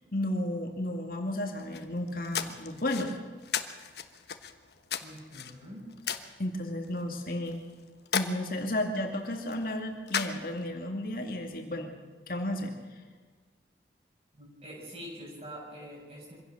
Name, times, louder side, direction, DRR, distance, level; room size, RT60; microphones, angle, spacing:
voice 1, 0.1-3.1 6.4-7.6 8.1-11.9 12.3-12.7, left 1 dB, 50° left, 3 dB, 2.2 m, -33 dB
sound 1, 1.6-10.9, left 7 dB, 65° left, 1.2 m, -38 dB
voice 2, 5.0-5.9 14.3-16.3, equal, 35° right, -3 dB, 7.7 m, -45 dB
24.5 x 16.5 x 6.5 m, 1.4 s
head